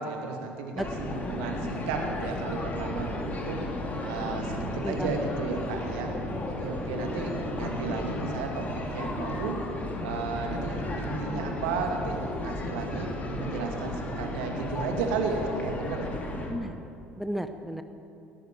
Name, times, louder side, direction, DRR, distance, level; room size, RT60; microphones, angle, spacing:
voice 1, 0.0-6.1 6.5-8.7 8.9-9.6 10.0-13.1 13.4-16.2, right 4 dB, 65° right, 2 dB, 2.4 m, -34 dB
voice 2, 0.7-1.2 4.8-5.1 7.4-7.5 16.5-16.8 17.2-17.8, equal, ahead, 8 dB, 0.9 m, -34 dB
sound 1, 0.8-16.5, left 1 dB, 25° left, 3.1 m, -34 dB
18.0 x 10.5 x 7.7 m, 2.6 s
figure-of-eight pair, 60°, 6 cm